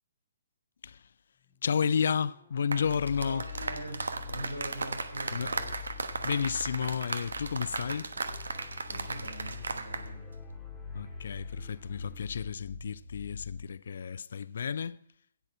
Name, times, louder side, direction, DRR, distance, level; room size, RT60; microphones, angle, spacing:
sound 1, 1.3-12.4, left 4 dB, 10° left, 3.0 m, -59 dB
voice 1, 1.6-3.5 5.3-5.5 6.2-8.1 10.9-15.0, left 7 dB, 60° left, 0.4 m, -32 dB
sound 2, 2.6-10.1 10.3-10.6, right 4 dB, 70° right, 1.1 m, -36 dB
sound 3, 2.8-13.7, left 5 dB, 80° left, 1.8 m, -44 dB
voice 2, 3.2-5.7 8.9-10.2, equal, 90° right, 4.8 m, -42 dB
16.0 x 6.7 x 6.0 m
figure-of-eight pair, 130°, 0 cm